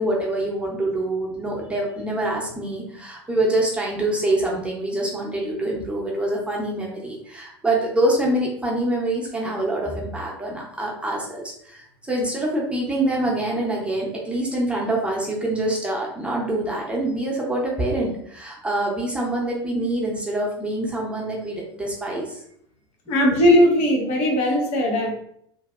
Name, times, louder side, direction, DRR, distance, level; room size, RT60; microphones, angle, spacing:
voice 1, 0.0-22.4, right 1 dB, 10° right, -3 dB, 0.9 m, -25 dB
voice 2, 23.1-25.1, left 1 dB, 50° left, 0 dB, 0.8 m, -18 dB
3.0 x 2.5 x 2.5 m, 0.68 s
figure-of-eight pair, 75°, 14 cm